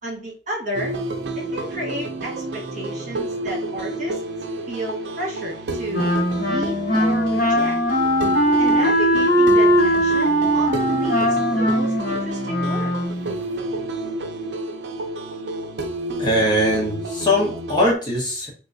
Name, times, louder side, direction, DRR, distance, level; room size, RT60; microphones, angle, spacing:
voice 1, 0.0-0.9 1.3-4.2 4.7-6.1 6.5-7.8 8.6-12.9, equal, 45° right, -3 dB, 1.4 m, -32 dB
sound 1, 0.7-18.0, right 2 dB, 70° right, 0.5 m, -30 dB
Wind instrument woodwind instrument, 5.9-13.3, equal, 55° left, 1.2 m, -19 dB
voice 2, 16.2-18.5, left 1 dB, 25° left, -3 dB, 1.2 m, -21 dB
3.6 x 3.0 x 2.6 m, 0.38 s
head